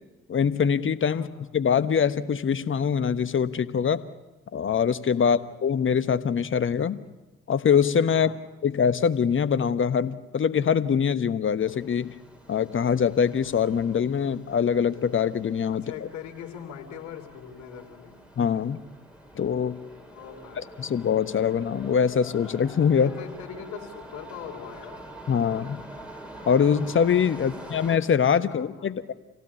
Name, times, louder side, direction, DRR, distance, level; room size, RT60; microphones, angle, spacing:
voice 1, 0.3-1.3 1.5-4.0 4.5-7.0 7.5-8.3 8.6-12.1 12.5-15.8 18.4-18.8 19.3-19.8 20.6-23.1 25.3-25.8 26.4-29.1, left 7 dB, 40° left, 14 dB, 1.2 m, -23 dB
sound 1, 11.6-28.0, right 1 dB, 5° right, 4.2 m, -45 dB
voice 2, 15.7-18.2 20.1-20.7 22.9-25.0 27.3-27.5 28.4-29.0, left 8 dB, 65° left, 3 dB, 3.2 m, -41 dB
26.5 x 16.5 x 8.4 m, 1.1 s
hypercardioid pair, 45°, 31 cm